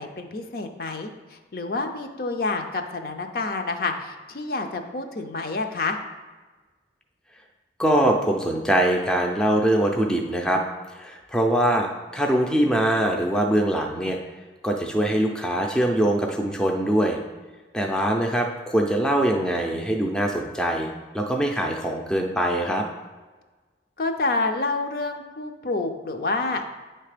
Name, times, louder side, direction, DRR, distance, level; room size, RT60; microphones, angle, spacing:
voice 1, 0.0-6.0 24.0-26.6, left 3 dB, 55° left, 5 dB, 0.5 m, -28 dB
voice 2, 7.8-10.6 11.0-14.2 14.6-17.2 17.7-22.8, right 1 dB, 5° left, 1 dB, 0.4 m, -23 dB
8.7 x 3.3 x 5.0 m, 1.3 s
head